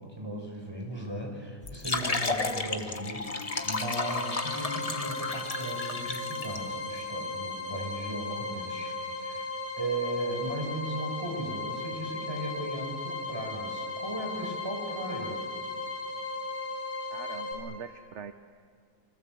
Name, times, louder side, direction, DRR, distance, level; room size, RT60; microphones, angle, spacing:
voice 1, 0.0-9.5 9.8-15.4, right 1 dB, 15° right, 1 dB, 5.7 m, -37 dB
sound 1, 1.6-6.6, left 3 dB, 25° left, 1.2 m, -33 dB
sound 2, 3.4-17.5, left 2 dB, 90° left, 6.8 m, -36 dB
voice 2, 17.1-18.3, right 6 dB, 50° right, 8 dB, 1.1 m, -42 dB
30.0 x 25.0 x 7.8 m, 2.1 s
omnidirectional pair, 1.8 m